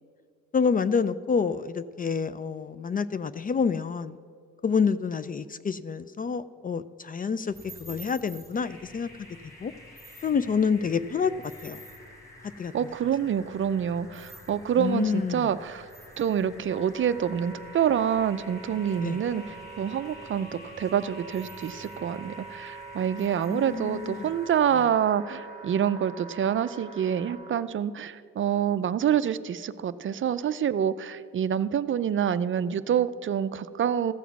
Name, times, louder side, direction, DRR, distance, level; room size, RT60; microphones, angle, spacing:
voice 1, 0.5-4.2 4.6-7.5 7.8-9.1 9.6-9.7 10.2-11.8 12.6-12.7 14.8-15.5 19.0-19.2 23.5-24.3, left 6 dB, 30° left, 15 dB, 0.4 m, -28 dB
sound 1, 7.5-24.9, right 1 dB, 10° left, 1.2 m, -52 dB
sound 2, 8.5-27.3, left 2 dB, 80° left, 2.9 m, -51 dB
voice 2, 12.7-15.9 16.2-34.1, right 9 dB, 40° right, 13 dB, 0.4 m, -27 dB
Wind instrument woodwind instrument, 16.1-27.7, right 4 dB, 25° right, 0.9 m, -45 dB
14.5 x 7.1 x 5.9 m, 2.3 s
cardioid pair, 90°, 30 cm